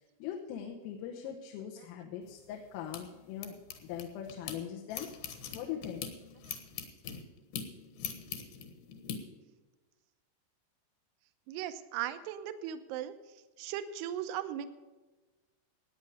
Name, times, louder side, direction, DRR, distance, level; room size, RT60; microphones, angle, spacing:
voice 1, 0.2-5.1 5.5-6.1, left 9 dB, 85° left, 1 dB, 3.8 m, -41 dB
sound 1, 2.2-4.6 4.9-9.2, left 8 dB, 65° left, 3.1 m, -43 dB
voice 2, 11.5-13.1 13.6-14.7, right 11 dB, 80° right, 10 dB, 2.4 m, -37 dB
17.0 x 9.4 x 4.9 m, 1.2 s
omnidirectional pair, 5.8 m